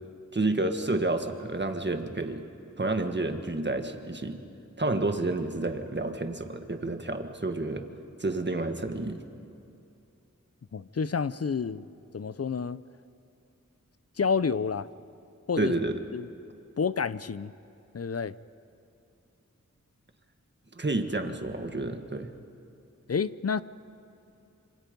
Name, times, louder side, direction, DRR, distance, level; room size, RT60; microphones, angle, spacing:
voice 1, 0.3-2.4 2.8-4.4 4.8-7.9 8.2-9.2 15.6-16.0 20.7-22.3, right 2 dB, 35° right, 1.6 m, -30 dB
voice 2, 10.7-11.9 12.1-12.8 14.2-14.9 15.5-15.7 16.1-16.3 16.8-17.5 17.9-18.3 23.1-23.6, left 5 dB, 50° left, 0.6 m, -29 dB
26.5 x 26.0 x 5.3 m
wide cardioid pair, 70°, 31 cm